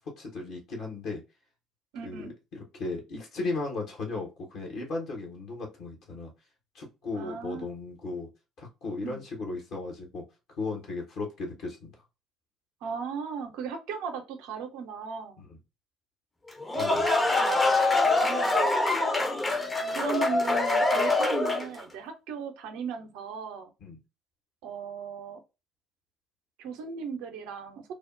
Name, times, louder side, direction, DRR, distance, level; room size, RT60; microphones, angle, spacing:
voice 1, 0.2-1.2 2.0-2.2 2.5-6.3 6.7-8.3 8.6-10.2 10.6-11.9 15.4-15.5 16.7-17.1 23.8-24.0, left 3 dB, 60° left, 1.0 m, -36 dB
voice 2, 1.9-2.3 7.1-7.7 9.0-9.2 12.8-15.4 16.7-16.9 17.9-18.7 19.9-23.7 24.6-25.4 26.6-27.8, right 6 dB, 65° right, 0.6 m, -37 dB
sound 1, 16.5-21.8, left 2 dB, 20° left, 0.6 m, -24 dB
3.3 x 2.0 x 2.4 m
figure-of-eight pair, 55°, 0 cm